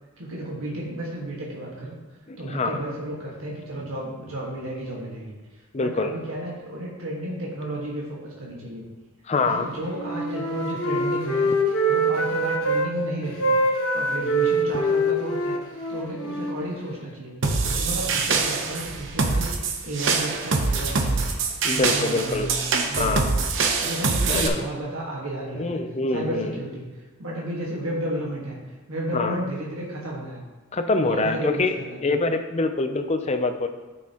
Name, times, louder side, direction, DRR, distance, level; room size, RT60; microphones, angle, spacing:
voice 1, 0.2-2.0 2.4-5.3 5.8-8.9 9.4-11.5 11.9-15.6 15.9-21.3 21.7-23.3 23.8-25.8 26.1-28.6 28.9-30.4 31.0-32.0, right 1 dB, 75° right, -4 dB, 1.6 m, -33 dB
voice 2, 2.3-2.8 5.7-6.2 9.3-9.7 21.6-22.5 23.0-23.2 24.3-24.6 25.6-26.6 29.1-29.4 30.7-31.8 32.0-33.7, left 3 dB, 30° left, 7 dB, 0.5 m, -25 dB
Wind instrument woodwind instrument, 9.9-12.9 13.4-17.2, right 1 dB, 60° left, 1.2 m, -24 dB
sound 1, 17.4-24.5, right 4 dB, 60° right, 0.8 m, -24 dB
9.6 x 6.3 x 3.0 m, 1.3 s
head